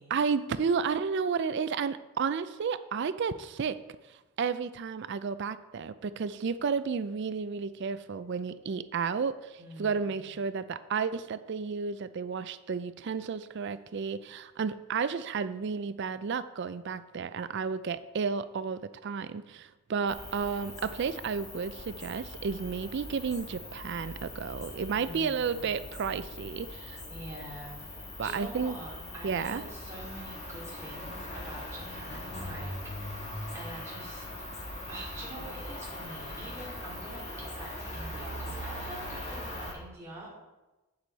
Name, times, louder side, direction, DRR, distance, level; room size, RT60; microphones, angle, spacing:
voice 1, 0.1-3.8 4.4-27.0 28.2-28.7 29.2-29.6, right 5 dB, 50° right, 13 dB, 0.4 m, -32 dB
voice 2, 9.6-10.3 24.9-25.8 26.7-27.8 28.2-34.3 34.9-40.3, right 1 dB, 15° right, -7 dB, 2.8 m, -45 dB
Cricket, 20.1-39.7, left 1 dB, 30° left, 1.6 m, -41 dB
8.3 x 7.9 x 4.1 m, 1.1 s
head